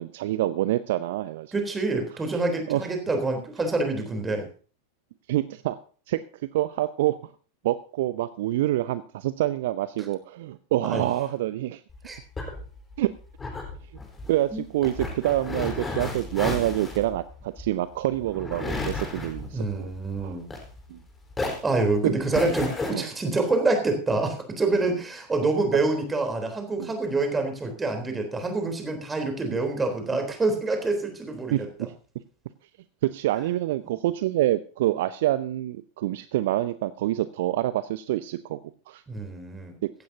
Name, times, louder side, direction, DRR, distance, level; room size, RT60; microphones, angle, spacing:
voice 1, 0.0-1.5 2.7-2.8 5.3-5.8 6.1-6.2 6.5-7.2 7.6-11.8 13.0-13.1 14.3-19.9 20.2-20.4 20.9-21.0 22.0-22.1 22.9-23.1 26.8-26.9 29.5-29.6 31.5-31.9 33.0-38.6 38.9-39.0 39.8-39.9, right 14 dB, 55° right, 15 dB, 0.6 m, -26 dB
voice 2, 1.5-4.5 10.9-11.0 12.0-12.2 14.5-14.7 19.5-20.5 21.6-31.7 39.1-39.8, right 3 dB, 15° right, 5 dB, 3.7 m, -26 dB
sound 1, 11.9-21.0 21.3-22.9, left 3 dB, 15° left, 4.2 m, -33 dB
16.5 x 15.0 x 2.8 m, 0.40 s
figure-of-eight pair, 90°, 0 cm